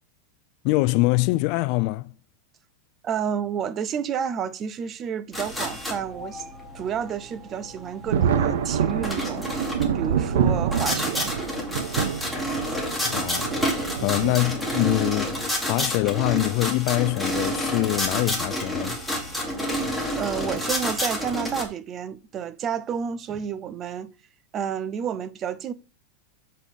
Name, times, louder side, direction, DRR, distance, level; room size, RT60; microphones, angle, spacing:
voice 1, 0.6-2.1 13.0-13.7 14.0-19.0, left 21 dB, 45° left, 0.3 m, -24 dB
voice 2, 3.0-9.5 9.9-11.3 20.2-24.1 24.5-25.7, right 8 dB, 25° right, 0.5 m, -30 dB
sound 1, 5.3-21.6, equal, ahead, 1.7 m, -30 dB
Thunder, 8.1-15.1 16.1-16.2 17.7-18.0 18.3-18.4 20.4-20.6 21.3-21.6, right 8 dB, 80° right, 1.0 m, -27 dB
7.5 x 4.2 x 5.2 m
supercardioid pair, 155°, 0 cm